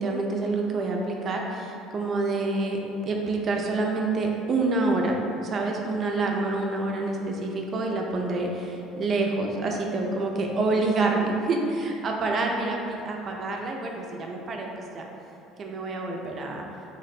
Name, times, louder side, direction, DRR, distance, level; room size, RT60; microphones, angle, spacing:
voice 1, 0.0-14.7 14.9-15.0 15.6-16.6, right 3 dB, 45° right, 1 dB, 0.5 m, -27 dB
3.8 x 2.1 x 4.1 m, 2.8 s
hypercardioid pair, 75°, 0 cm